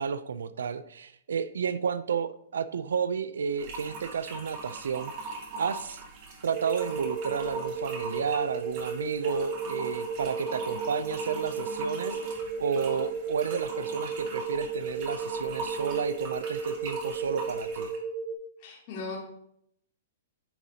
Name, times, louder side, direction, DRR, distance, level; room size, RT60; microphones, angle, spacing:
voice 1, 0.0-6.0 6.4-17.9, right 6 dB, 85° right, 14 dB, 0.3 m, -32 dB
sound 1, 3.6-18.0, right 3 dB, 40° right, 1.4 m, -41 dB
sound 2, 6.5-18.3, right 4 dB, 60° right, 1.5 m, -35 dB
voice 2, 18.6-19.2, left 4 dB, 40° left, -6 dB, 2.6 m, -38 dB
10.0 x 4.1 x 2.7 m, 0.74 s
hypercardioid pair, 150°, 0 cm